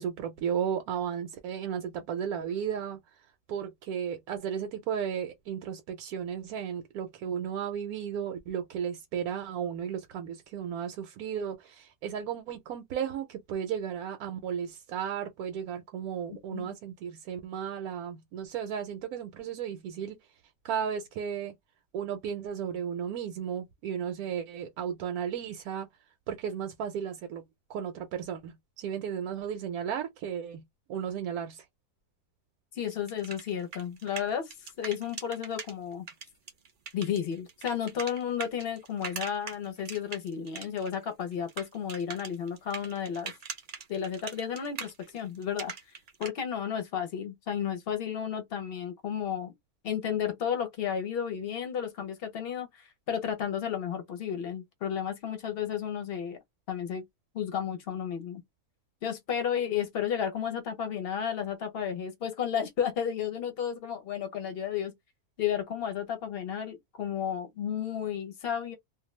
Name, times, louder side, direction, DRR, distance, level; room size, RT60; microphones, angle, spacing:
voice 1, 0.0-3.0 3.5-20.2 20.6-21.5 21.9-25.9 26.3-27.4 27.7-30.6 30.9-31.6, right 8 dB, 80° right, 1.0 m, -34 dB
voice 2, 16.3-16.8 32.7-34.5 34.8-36.0 36.9-43.3 43.9-45.7 46.2-49.5 49.8-56.4 56.7-57.1 57.3-58.4 59.0-64.9 65.4-68.8, left 8 dB, 50° left, 0.8 m, -32 dB
sound 1, 32.8-35.7 36.1-41.0 41.2-46.3, right 6 dB, 55° right, 0.6 m, -41 dB
2.5 x 2.2 x 3.0 m
omnidirectional pair, 1.5 m